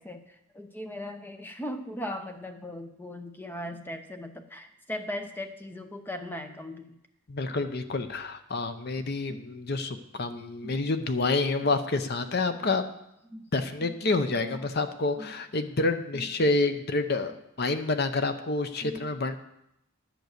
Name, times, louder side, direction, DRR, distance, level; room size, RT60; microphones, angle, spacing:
voice 1, 0.0-7.0 9.3-9.4 10.6-10.8 13.3-13.5 13.8-13.9 14.5-14.7 15.2-15.3 16.1-16.3 18.8-19.1, left 1 dB, 10° left, 6 dB, 0.7 m, -38 dB
voice 2, 7.3-12.9 13.5-19.4, left 3 dB, 45° left, 9 dB, 0.7 m, -28 dB
10.5 x 7.9 x 6.5 m, 0.81 s
head